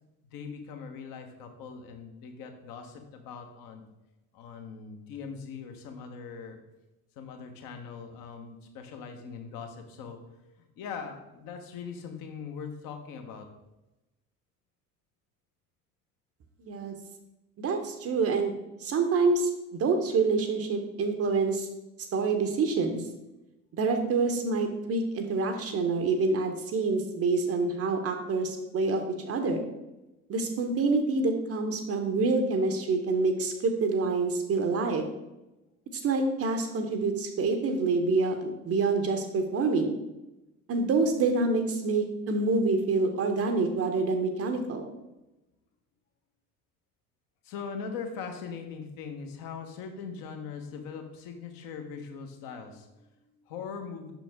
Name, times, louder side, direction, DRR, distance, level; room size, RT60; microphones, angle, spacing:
voice 1, 0.3-3.8 4.3-6.6 7.2-10.2 10.8-13.5 47.4-54.1, left 6 dB, 50° left, 5 dB, 1.1 m, -41 dB
voice 2, 16.6-16.9 17.6-18.5 18.8-21.7 22.1-23.0 23.7-29.6 30.3-35.1 36.0-40.0 40.7-44.8, right 3 dB, 30° right, 6 dB, 0.8 m, -27 dB
6.0 x 5.9 x 3.5 m, 0.98 s
figure-of-eight pair, 60°, 45 cm